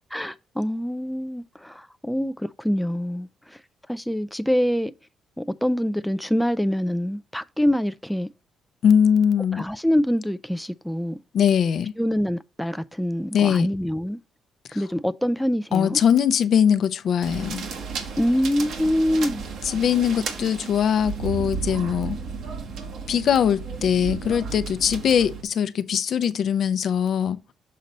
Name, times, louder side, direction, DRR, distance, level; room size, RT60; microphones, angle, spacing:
voice 1, 0.1-3.6 3.9-4.9 5.4-8.3 9.5-11.2 12.0-14.2 14.7-16.0 18.2-19.4, equal, 5° left, 0.3 m, -25 dB
voice 2, 8.8-9.6 11.3-11.9 13.3-13.7 15.7-17.6 19.6-22.2 23.1-27.4, left 8 dB, 65° left, 0.5 m, -21 dB
sound 1, 17.2-25.4, right 5 dB, 75° right, 1.4 m, -33 dB
6.6 x 3.9 x 4.1 m
cardioid pair, 90°, 0 cm